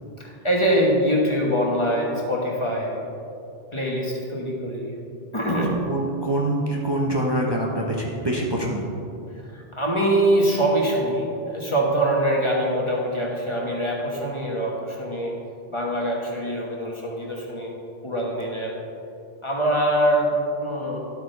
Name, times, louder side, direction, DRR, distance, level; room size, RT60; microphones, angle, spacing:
voice 1, 0.2-3.0 3.7-4.9 5.3-5.8 9.5-15.3 15.7-17.8 18.0-18.8 19.4-21.0, right 1 dB, 30° left, -2 dB, 1.3 m, -23 dB
voice 2, 5.9-8.9, right 1 dB, 25° right, -3 dB, 0.8 m, -25 dB
11.5 x 8.6 x 3.3 m, 2.7 s
omnidirectional pair, 1.1 m